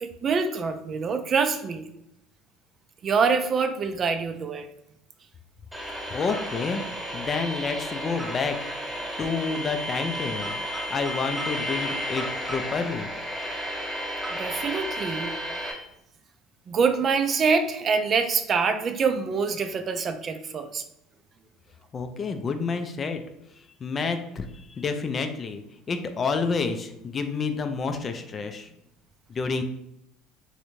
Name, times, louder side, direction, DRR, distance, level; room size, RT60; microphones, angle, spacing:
voice 1, 0.0-1.9 3.0-4.7 14.3-15.3 15.6-15.7 16.7-20.8, right 5 dB, 40° right, 8 dB, 0.4 m, -25 dB
sound 1, 5.7-15.7, equal, ahead, 1.2 m, -32 dB
voice 2, 6.1-6.8 7.1-8.6 9.2-10.6 10.9-13.1 21.9-23.2 23.8-25.6 25.9-28.7 29.3-29.6, left 4 dB, 35° left, 7 dB, 0.4 m, -29 dB
3.1 x 2.6 x 3.1 m, 0.80 s
hypercardioid pair, 75°, 0 cm